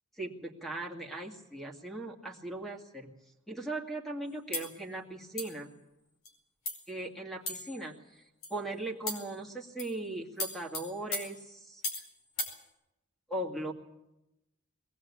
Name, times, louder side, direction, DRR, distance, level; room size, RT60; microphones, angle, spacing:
voice 1, 0.2-3.1 3.5-5.7 6.9-8.2 8.5-12.0 13.3-13.7, right 2 dB, ahead, 1 dB, 2.2 m, -39 dB
sound 1, 4.5-4.7 5.4-5.6 6.2-6.3 6.6-6.9 7.5-7.8 8.4-8.6 9.1-9.3 9.8-10.0 10.4-12.1 12.4-12.6, left 2 dB, 80° left, 4.9 m, -37 dB
21.5 x 18.0 x 8.5 m, 0.94 s
head